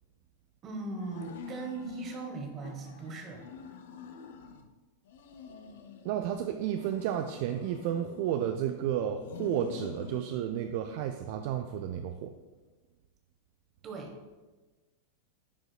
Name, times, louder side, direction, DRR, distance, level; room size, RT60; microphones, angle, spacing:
voice 1, 0.6-3.5 13.8-14.1, right 3 dB, 30° right, 2 dB, 1.1 m, -39 dB
sound 1, 1.0-2.2 2.6-4.7 5.1-6.3 6.7-8.6 9.1-10.3, left 6 dB, 55° left, 0.5 m, -47 dB
voice 2, 6.0-12.3, right 10 dB, 50° right, 7 dB, 0.3 m, -32 dB
10.0 x 4.7 x 2.3 m, 1.2 s
figure-of-eight pair, 90°, 0 cm